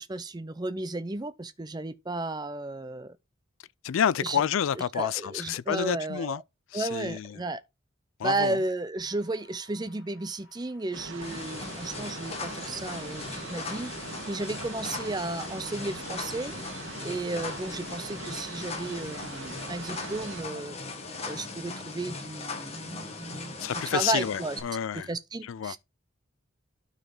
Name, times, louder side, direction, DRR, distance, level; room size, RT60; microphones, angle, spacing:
voice 1, 0.0-3.2 4.2-4.4 4.9-6.4 6.7-7.6 8.2-13.9 14.2-16.5 17.0-20.8 21.2-24.6 25.1-25.8, right 2 dB, 20° right, 0.5 m, -33 dB
voice 2, 3.8-6.4 6.7-7.4 8.2-8.6 23.6-25.1 25.4-25.8, left 8 dB, 75° left, 0.4 m, -29 dB
sound 1, 9.0-24.0, left 2 dB, 55° left, 2.5 m, -57 dB
sound 2, 10.9-20.4, right 3 dB, 70° right, 1.4 m, -41 dB
sound 3, 11.2-24.6, left 3 dB, 30° left, 1.4 m, -39 dB
12.0 x 4.1 x 3.8 m
head